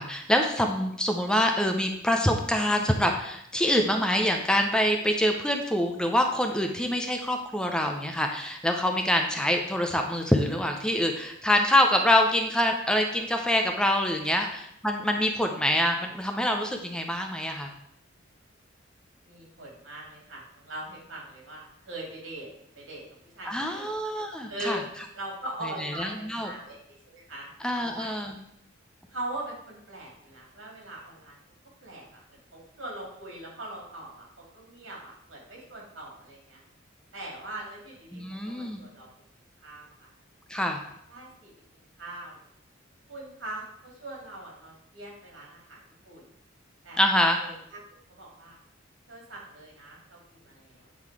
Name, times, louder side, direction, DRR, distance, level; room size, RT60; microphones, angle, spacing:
voice 1, 0.0-17.7 23.5-24.8 25.8-26.5 27.6-28.4 38.1-38.8 40.5-40.8 47.0-47.4, left 1 dB, 5° left, 3 dB, 0.6 m, -25 dB
voice 2, 19.2-22.5 22.7-23.0 23.3-23.9 24.5-24.8 25.1-28.3 29.1-31.4 31.8-36.6 37.1-39.1 39.6-40.1 40.5-40.6 41.1-41.5 42.0-42.4 43.1-46.3 46.8-47.8 48.1-48.6 49.1-50.9, right 1 dB, 80° right, -2 dB, 2.5 m, -41 dB
8.7 x 3.8 x 4.7 m, 0.73 s
head